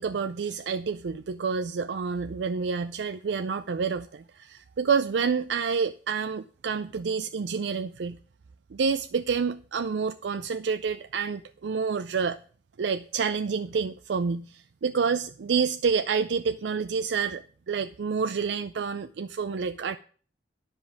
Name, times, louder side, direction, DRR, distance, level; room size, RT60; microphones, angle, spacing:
voice 1, 0.0-8.2 8.7-12.4 12.8-20.0, right 5 dB, 80° right, 10 dB, 0.4 m, -28 dB
10.0 x 5.2 x 7.3 m, 0.43 s
head